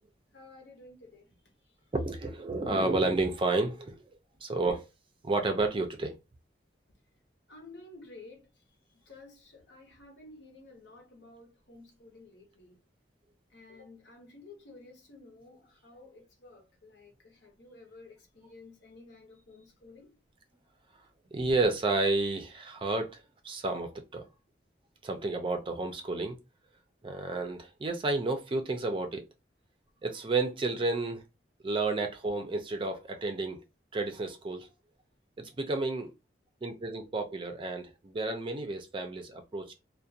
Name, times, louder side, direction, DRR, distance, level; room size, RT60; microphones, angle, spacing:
voice 1, 0.3-1.9 7.5-12.8 13.5-20.1, left 2 dB, 70° left, 0.8 m, -53 dB
voice 2, 1.9-4.0 4.4-4.9 5.2-6.2 21.3-24.2 25.0-26.4 27.0-29.2 30.0-31.2 31.6-33.6 33.9-34.7 35.4-36.1 36.6-39.7, right 3 dB, 30° right, 0.4 m, -31 dB
2.4 x 2.1 x 2.6 m
head